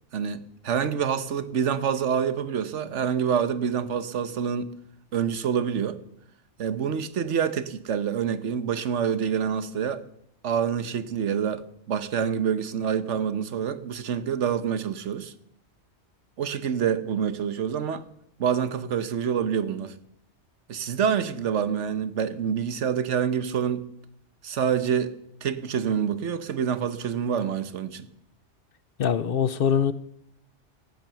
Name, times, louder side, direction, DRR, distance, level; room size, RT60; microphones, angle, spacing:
voice 1, 0.1-4.7 5.1-6.0 6.6-10.1 10.4-15.3 16.4-18.1 18.4-20.0 20.7-23.9 24.4-28.1, right 7 dB, 90° right, 1.3 m, -27 dB
voice 2, 29.0-29.9, left 7 dB, 60° left, 0.8 m, -23 dB
14.5 x 9.1 x 6.9 m
omnidirectional pair, 1.2 m